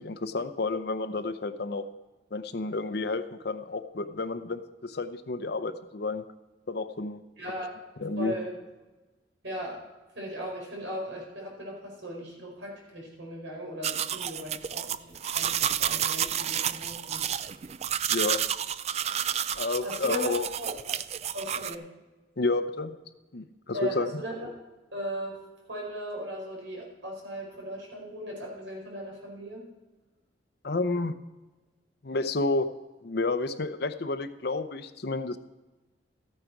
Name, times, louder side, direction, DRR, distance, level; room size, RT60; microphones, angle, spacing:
voice 1, 0.0-1.8 2.3-6.2 6.7-7.2 8.0-8.4 18.1-18.4 19.6-20.5 22.4-22.9 23.3-24.1 30.6-31.1 32.0-32.7 33.0-35.4, left 3 dB, 55° left, 10 dB, 0.7 m, -30 dB
voice 2, 7.4-7.8 8.2-8.5 9.4-9.8 10.1-17.2 19.8-20.3 20.6-21.0 21.3-21.9 23.7-24.5 24.9-25.4 25.7-29.7, equal, 85° right, -1 dB, 5.0 m, -38 dB
sound 1, 13.8-21.7, right 9 dB, 35° right, 0.3 m, -30 dB
14.0 x 9.0 x 4.7 m, 1.2 s
head